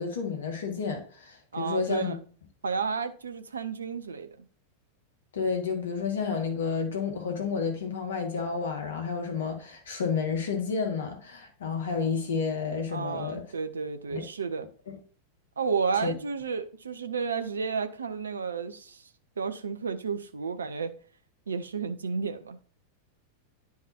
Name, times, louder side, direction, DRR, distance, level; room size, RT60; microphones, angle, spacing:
voice 1, 0.0-2.2 5.3-13.4 14.1-14.2 14.9-15.0 16.0-16.1, left 5 dB, 65° left, 1.8 m, -30 dB
voice 2, 1.5-2.2 2.6-4.3 12.9-14.7 15.6-19.0 19.4-20.9 21.5-22.6, right 5 dB, 70° right, 0.6 m, -32 dB
10.5 x 4.7 x 2.8 m
figure-of-eight pair, 90°, 0 cm